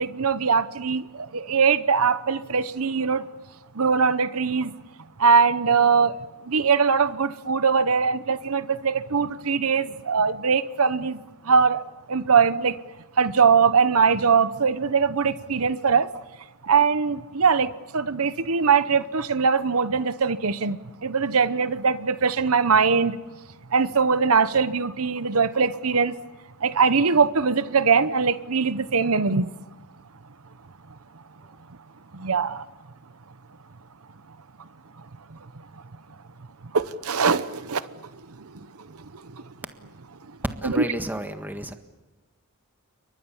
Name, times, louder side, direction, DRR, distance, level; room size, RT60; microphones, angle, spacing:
voice 1, 0.0-3.2 3.7-4.7 5.2-6.2 6.5-11.2 11.4-11.8 12.1-12.7 13.2-16.1 16.6-23.2 23.7-26.1 26.6-29.5 32.1-32.6 36.7-37.8 38.4-38.5 39.3-39.4 40.6-40.9, right 5 dB, 75° right, 14 dB, 0.9 m, -21 dB
voice 2, 40.6-41.7, right 1 dB, 10° right, 7 dB, 1.7 m, -32 dB
29.5 x 23.5 x 7.2 m, 1.1 s
head